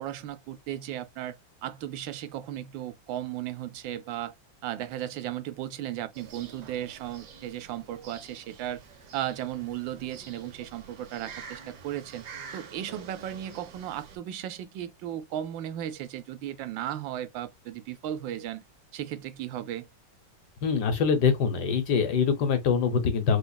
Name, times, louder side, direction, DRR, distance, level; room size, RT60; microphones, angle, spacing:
voice 1, 0.0-1.4 1.6-4.3 4.6-8.8 9.1-12.2 12.5-18.6 18.9-19.9, right 12 dB, 90° right, 1.3 m, -35 dB
sound 1, 6.1-14.2, right 6 dB, 70° right, 1.4 m, -47 dB
voice 2, 20.6-23.4, left 6 dB, 65° left, 1.4 m, -24 dB
5.1 x 2.4 x 2.2 m
omnidirectional pair, 2.0 m